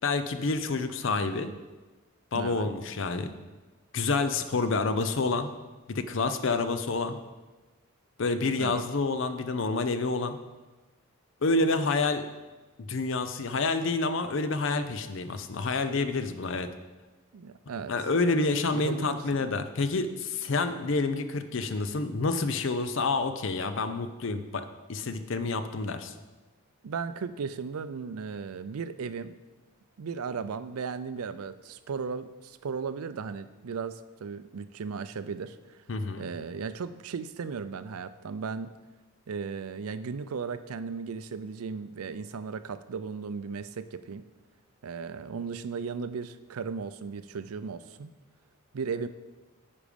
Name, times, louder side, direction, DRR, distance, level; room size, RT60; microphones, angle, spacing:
voice 1, 0.0-1.5 2.3-3.3 3.9-5.5 5.9-7.2 8.2-10.4 11.4-12.2 12.8-16.7 17.9-26.1 35.9-36.3, left 3 dB, 60° left, 10 dB, 0.6 m, -28 dB
voice 2, 2.3-2.7 8.6-8.9 17.3-17.9 18.7-19.5 26.8-29.4 30.0-35.8 36.2-38.7 39.3-44.2 44.8-48.1 48.7-49.1, right 5 dB, 85° right, 13 dB, 0.5 m, -36 dB
9.8 x 5.2 x 5.1 m, 1.2 s
head